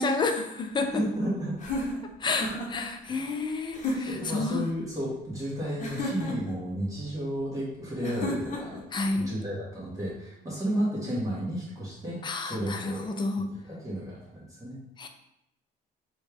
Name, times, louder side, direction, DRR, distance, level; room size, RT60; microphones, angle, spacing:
voice 1, 0.0-1.0 2.2-4.6 8.9-9.3 12.2-13.5 15.0-15.1, left 3 dB, 25° left, 6 dB, 0.4 m, -30 dB
voice 2, 0.7-1.6 3.0-3.2 4.0-13.1 13.5-14.8, right 1 dB, 20° right, -7 dB, 1.3 m, -33 dB
sound 1, 1.6-2.9 3.7-4.3 5.8-6.6 8.0-8.8, left 1 dB, 45° left, 0.9 m, -33 dB
4.3 x 2.3 x 3.4 m, 0.82 s
cardioid pair, 110°, 17 cm